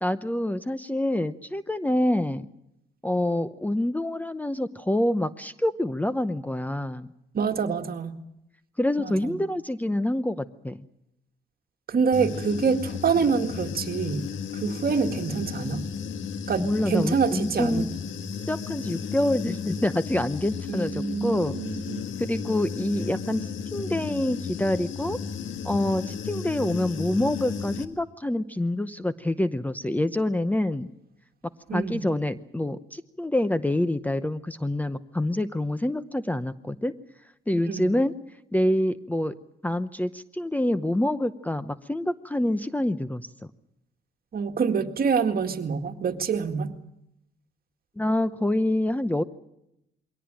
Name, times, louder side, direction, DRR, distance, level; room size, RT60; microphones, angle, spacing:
voice 1, 0.0-2.5 3.0-7.1 8.8-10.9 16.6-17.9 18.5-21.6 22.2-25.2 25.6-30.9 31.7-37.0 37.5-38.1 38.5-39.3 39.6-43.3 48.0-49.2, left 1 dB, 10° left, 13 dB, 0.8 m, -26 dB
voice 2, 7.3-8.2 9.0-9.4 11.9-14.2 14.5-15.9 16.5-17.9 20.7-22.1 31.7-32.1 37.7-37.9 44.3-46.7, right 5 dB, 50° right, 6 dB, 1.9 m, -26 dB
Human voice / Buzz, 12.1-27.8, left 6 dB, 75° left, 1.6 m, -34 dB
23.0 x 17.5 x 8.9 m, 0.84 s
cardioid pair, 90°, 20 cm